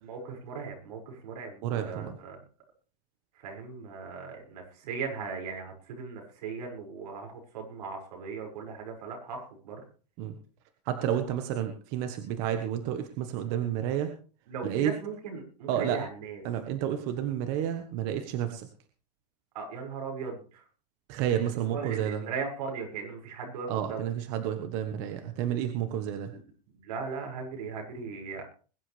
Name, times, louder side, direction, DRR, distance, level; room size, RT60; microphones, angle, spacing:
voice 1, 0.0-2.4 3.4-9.8 14.5-16.4 19.5-20.6 21.7-24.1 26.3-26.4 26.7-28.4, right 5 dB, 80° right, 2 dB, 6.1 m, -38 dB
voice 2, 1.6-2.2 10.2-10.4 10.8-14.1 14.6-14.9 15.7-16.0 16.4-18.7 21.1-22.2 23.7-26.3, right 10 dB, 40° right, 7 dB, 1.4 m, -30 dB
21.5 x 11.0 x 3.4 m, 0.39 s
supercardioid pair, 165°, 21 cm